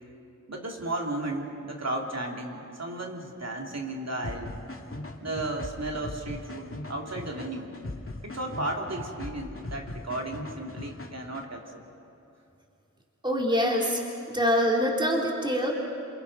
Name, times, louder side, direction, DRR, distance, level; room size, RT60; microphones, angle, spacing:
voice 1, 0.5-4.5 5.2-7.7 8.2-11.8, right 2 dB, 60° right, 0 dB, 3.2 m, -34 dB
sound 1, 4.2-11.4, left 2 dB, 45° left, 2.2 m, -39 dB
voice 2, 13.2-14.0 14.3-15.7, equal, 15° right, -1 dB, 3.4 m, -24 dB
28.0 x 27.5 x 5.7 m, 2.8 s
wide cardioid pair, 60°, 30 cm